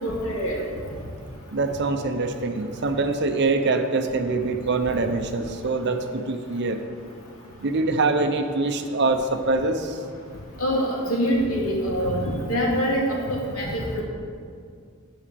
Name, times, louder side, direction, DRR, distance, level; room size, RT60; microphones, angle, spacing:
voice 1, 0.0-0.6 10.6-14.0, equal, 75° left, -3 dB, 2.2 m, -25 dB
voice 2, 1.5-6.8 7.6-10.0, right 3 dB, 50° right, 7 dB, 0.6 m, -24 dB
10.5 x 5.0 x 6.9 m, 2.2 s
head